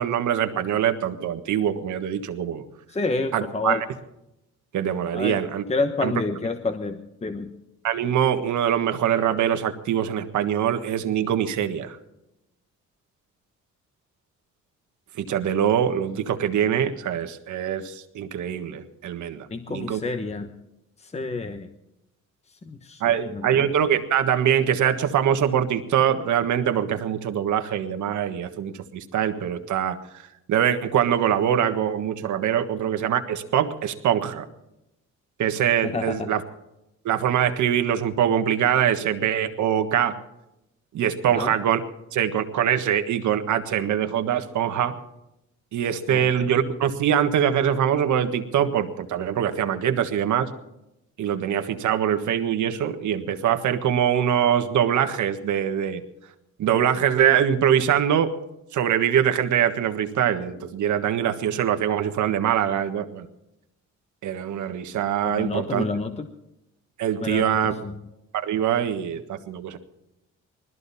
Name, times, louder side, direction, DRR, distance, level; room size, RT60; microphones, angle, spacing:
voice 1, 0.0-2.6 3.3-3.8 4.7-5.6 6.0-6.1 7.8-12.0 15.2-20.0 23.0-30.0 30.5-34.5 35.4-36.4 37.0-40.2 40.9-41.8 42.1-44.9 45.7-50.5 51.2-56.0 56.6-58.3 58.7-63.3 64.2-65.9 67.0-67.7 68.3-69.8, right 9 dB, 75° right, 7 dB, 1.6 m, -23 dB
voice 2, 2.9-3.8 5.1-5.4 5.7-7.5 19.5-20.5 21.0-21.7 22.5-23.7 35.8-36.3 41.3-41.5 46.1-46.3 65.2-66.3 67.2-68.0, left 3 dB, 20° left, 7 dB, 1.1 m, -29 dB
20.0 x 14.0 x 4.2 m, 0.87 s
cardioid pair, 90°, 30 cm